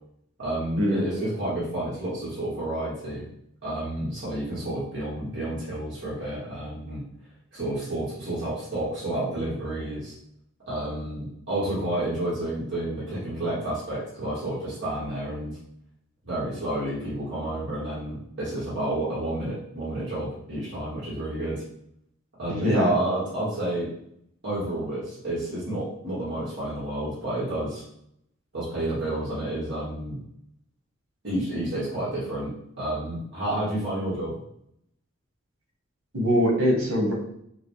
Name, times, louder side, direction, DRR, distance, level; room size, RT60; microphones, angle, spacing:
voice 1, 0.4-3.3 3.6-7.0 7.5-10.1 10.7-15.6 16.2-21.6 22.4-23.9 24.4-27.8 28.5-30.2 31.2-34.3, right 1 dB, 55° right, -8 dB, 1.7 m, -30 dB
voice 2, 22.6-22.9 36.1-37.1, equal, 85° right, -1 dB, 1.4 m, -22 dB
6.1 x 2.3 x 3.2 m, 0.72 s
head